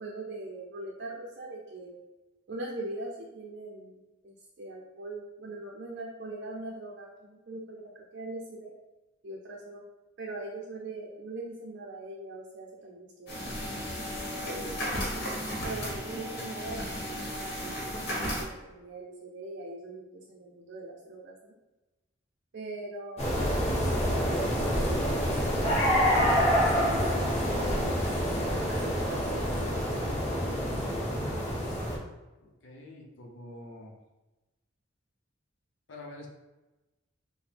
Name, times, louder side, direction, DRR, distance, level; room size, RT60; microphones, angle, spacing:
voice 1, 0.0-2.0 2.5-8.7 9.2-9.8 10.2-13.7 14.4-15.1 15.6-21.6 22.5-25.8 28.7-30.2, right 2 dB, 55° right, -2 dB, 0.5 m, -42 dB
sound 1, 13.3-18.4, equal, 55° left, 1.2 m, -34 dB
sound 2, 23.2-32.0, equal, 35° left, 1.0 m, -27 dB
voice 2, 32.6-33.9 35.9-36.3, left 1 dB, 70° left, -1 dB, 0.7 m, -46 dB
4.9 x 2.1 x 3.3 m, 1.1 s
head